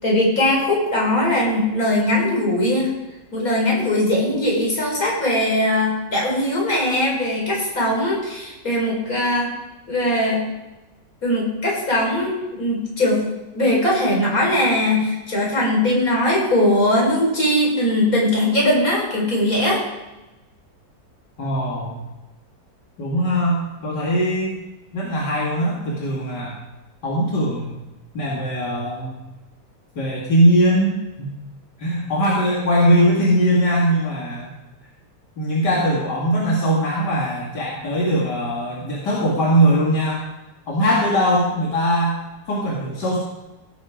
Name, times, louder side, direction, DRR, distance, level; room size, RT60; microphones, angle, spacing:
voice 1, 0.0-2.9 3.3-9.5 9.9-10.5 11.2-13.2 13.5-19.8, left 1 dB, 55° left, -3 dB, 5.1 m, -20 dB
voice 2, 21.4-22.0 23.0-24.6 24.9-26.6 27.0-27.7 28.1-29.2 30.0-31.3 31.8-34.5 35.4-40.2 40.7-42.1 42.5-43.2, equal, 75° left, -4 dB, 2.7 m, -20 dB
17.5 x 8.3 x 4.9 m, 1.0 s
omnidirectional pair, 1.8 m